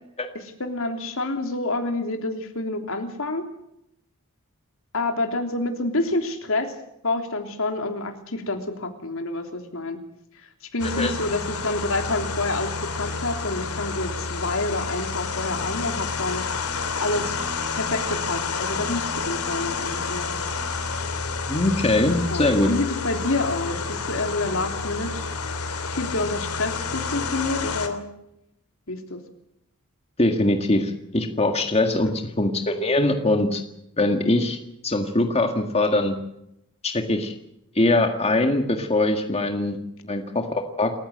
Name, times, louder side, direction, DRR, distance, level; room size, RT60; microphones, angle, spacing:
voice 1, 0.6-3.4 4.9-6.7 7.0-10.0 10.7-16.4 17.0-17.4 17.8-20.4 22.1-25.3 25.9-28.1 28.9-29.2, left 2 dB, 65° left, 5 dB, 3.3 m, -28 dB
sound 1, 10.8-27.9, left 4 dB, 85° left, 3.0 m, -29 dB
voice 2, 21.5-22.7 30.2-32.1 32.4-33.6 34.0-34.6 34.8-36.1 36.8-37.3 37.8-39.8 40.0-40.9, left 2 dB, 30° left, 5 dB, 1.9 m, -22 dB
28.5 x 15.0 x 7.9 m, 0.80 s
head